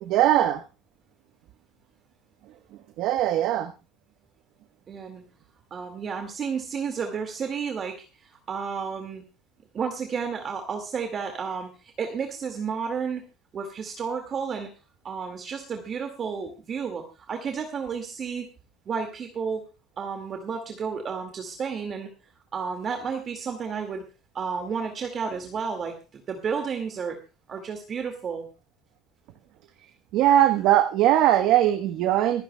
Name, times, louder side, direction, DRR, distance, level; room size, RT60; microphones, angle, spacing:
voice 1, 0.0-0.6 3.0-3.7 30.1-32.4, right 12 dB, 70° right, 7 dB, 1.1 m, -20 dB
voice 2, 4.9-5.2 5.7-9.2 9.7-11.7 12.0-13.2 13.5-14.7 15.0-18.5 18.9-19.6 20.0-22.1 22.5-24.0 24.3-27.2 27.5-28.5, right 6 dB, 40° right, 4 dB, 2.1 m, -32 dB
25.5 x 10.5 x 2.3 m, 0.31 s
supercardioid pair, 100°, 0 cm